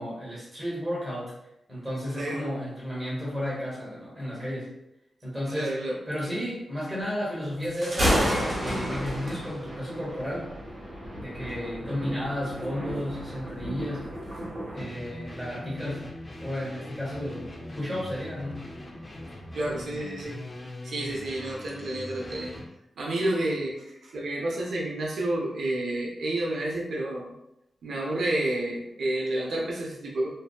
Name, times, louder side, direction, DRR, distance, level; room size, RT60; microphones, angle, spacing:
voice 1, 0.0-1.3 1.7-4.7 5.2-5.8 6.1-10.5 11.1-14.1 14.7-18.8, equal, 5° right, -7 dB, 1.0 m, -33 dB
voice 2, 2.1-2.4 5.5-6.0 19.5-20.4 20.8-22.6 23.0-27.3 27.8-30.3, right 1 dB, 85° right, -3 dB, 0.5 m, -30 dB
Thunder, 7.6-14.9, equal, 35° right, 1.0 m, -31 dB
sound 1, 14.8-22.7, left 1 dB, 25° left, 0.3 m, -41 dB
2.6 x 2.3 x 2.3 m, 0.84 s
wide cardioid pair, 135°, 0 cm